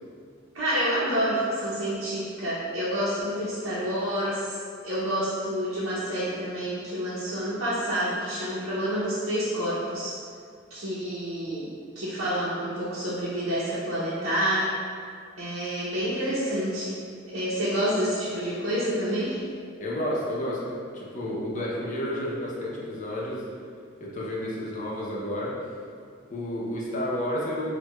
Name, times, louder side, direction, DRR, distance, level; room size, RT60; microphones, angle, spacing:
voice 1, 0.5-4.6 4.8-10.2 10.7-14.7 15.4-19.4, equal, 80° right, -11 dB, 0.6 m, -28 dB
voice 2, 19.8-23.4 24.0-25.5 26.3-27.7, left 1 dB, 40° left, -5 dB, 0.6 m, -31 dB
4.5 x 2.2 x 2.3 m, 2.2 s
head